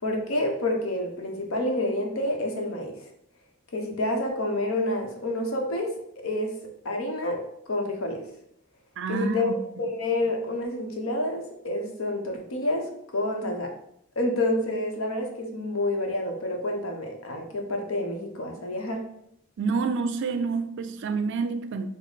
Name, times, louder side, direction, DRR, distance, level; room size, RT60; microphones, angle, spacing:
voice 1, 0.0-3.1 3.7-6.5 6.8-7.4 7.7-8.2 9.1-9.5 9.8-12.9 13.1-13.7 14.2-19.0, left 1 dB, 70° left, 2 dB, 0.8 m, -28 dB
voice 2, 9.0-9.5 19.6-21.9, right 4 dB, 55° right, 9 dB, 0.4 m, -28 dB
5.1 x 2.0 x 3.9 m, 0.73 s
head